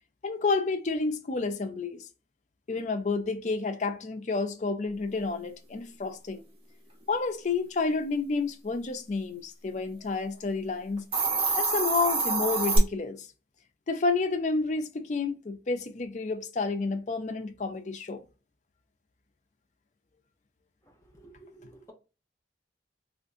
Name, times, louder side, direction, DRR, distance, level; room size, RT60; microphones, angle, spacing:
voice 1, 0.2-2.0 2.7-6.4 7.1-11.0 11.6-13.3 13.9-18.2, left 3 dB, 40° left, 0.4 m, -30 dB
Hiss, 11.0-12.8, right 3 dB, 30° right, 0.8 m, -26 dB
voice 2, 21.2-21.9, right 2 dB, 15° left, 0.8 m, -52 dB
3.5 x 2.5 x 2.5 m
head